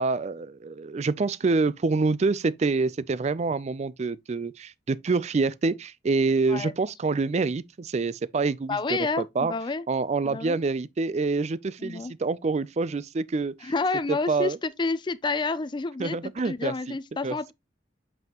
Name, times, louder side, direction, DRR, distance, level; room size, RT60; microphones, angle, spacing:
voice 1, 0.0-9.5 9.9-13.7 14.1-14.6 16.0-16.7 17.2-17.4, right 3 dB, 40° right, 0.4 m, -26 dB
voice 2, 8.7-9.8 10.2-10.6 11.8-12.1 13.6-17.5, left 3 dB, 25° left, 0.4 m, -29 dB
7.9 x 5.5 x 2.9 m
head